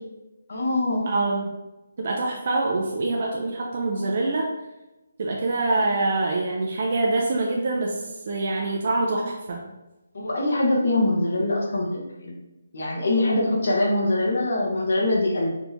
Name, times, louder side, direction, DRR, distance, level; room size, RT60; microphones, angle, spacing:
voice 1, 0.5-1.1 10.1-12.3 12.7-15.5, left 2 dB, 60° left, -2 dB, 1.0 m, -23 dB
voice 2, 1.1-1.5 2.0-4.5 5.2-9.6, right 2 dB, 40° right, -2 dB, 0.4 m, -25 dB
4.4 x 2.7 x 3.4 m, 1.0 s
hypercardioid pair, 175°, 0 cm